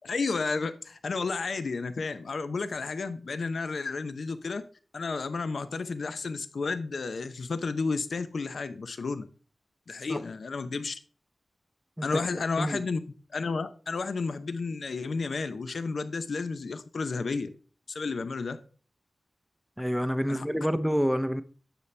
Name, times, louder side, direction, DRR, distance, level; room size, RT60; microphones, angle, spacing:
voice 1, 0.0-4.6 4.9-9.3 9.9-10.9 12.0-13.0 13.3-17.5 17.9-18.6 20.3-20.5, left 4 dB, 75° left, 0.7 m, -32 dB
voice 2, 19.8-21.4, equal, ahead, 0.6 m, -28 dB
9.1 x 6.9 x 3.3 m
wide cardioid pair, 105°, 0 cm